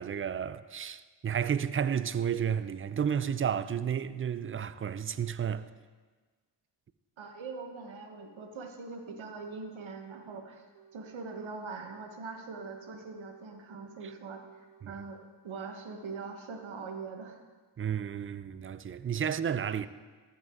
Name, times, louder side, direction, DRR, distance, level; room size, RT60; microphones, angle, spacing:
voice 1, 0.0-5.6 14.8-14.9 17.8-19.9, right 8 dB, 30° right, 0.4 m, -32 dB
voice 2, 7.2-10.7 10.9-14.4 14.9-17.4, right 4 dB, 70° right, 1.2 m, -42 dB
sound 1, 10.1-10.5 10.7-12.3 12.5-14.1 14.3-15.9 16.1-17.1, right 7 dB, 55° right, 0.9 m, -60 dB
14.0 x 5.4 x 3.7 m
cardioid pair, 50°, 48 cm